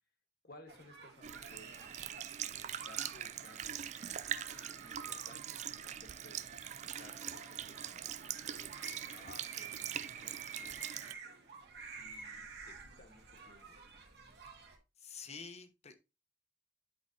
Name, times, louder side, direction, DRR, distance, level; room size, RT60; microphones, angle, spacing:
voice 1, 0.4-2.0 2.4-6.4 6.8-10.7 11.1-11.5 12.0-13.8, left 2 dB, 60° left, 6 dB, 1.6 m, -60 dB
sound 1, 0.7-14.8, right 5 dB, 70° right, 2.2 m, -51 dB
Sink (filling or washing) / Liquid, 1.2-11.1, right 10 dB, 40° right, 0.3 m, -43 dB
voice 2, 15.0-16.0, left 5 dB, 40° left, 9 dB, 0.9 m, -48 dB
11.5 x 4.0 x 2.7 m, 0.27 s
head